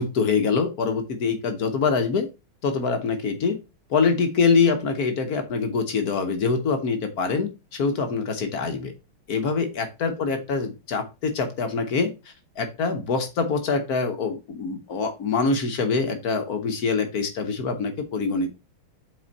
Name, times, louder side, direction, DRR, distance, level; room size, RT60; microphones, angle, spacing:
voice 1, 0.0-2.3 2.6-3.6 3.9-8.9 9.3-12.1 12.6-18.5, left 4 dB, 55° left, 7 dB, 1.2 m, -24 dB
7.8 x 4.4 x 3.9 m, 0.27 s
omnidirectional pair, 2.3 m